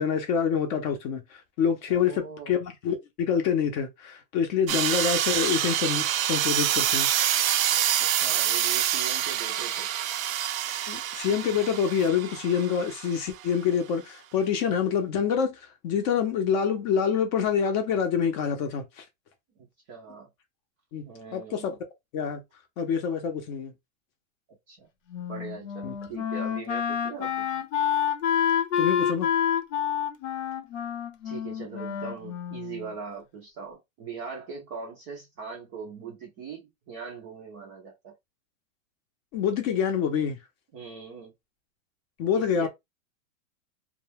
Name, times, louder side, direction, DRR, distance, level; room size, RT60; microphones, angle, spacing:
voice 1, 0.0-7.1 10.9-19.0 20.9-21.0 21.3-21.7 22.1-22.4 22.8-23.7 25.8-25.9 28.8-29.3 39.3-40.4 42.2-42.7, left 7 dB, 35° left, 0.6 m, -26 dB
voice 2, 1.9-2.6 8.0-9.9 19.6-20.3 21.0-21.8 24.7-24.9 25.3-27.5 30.7-30.8 31.2-38.1 40.7-41.3 42.3-42.7, right 5 dB, 20° right, 0.4 m, -41 dB
sound 1, 4.7-13.3, right 11 dB, 85° right, 0.5 m, -26 dB
Wind instrument woodwind instrument, 25.1-32.9, left 8 dB, 70° left, 0.8 m, -28 dB
2.2 x 2.2 x 3.2 m
supercardioid pair, 150°, 40 cm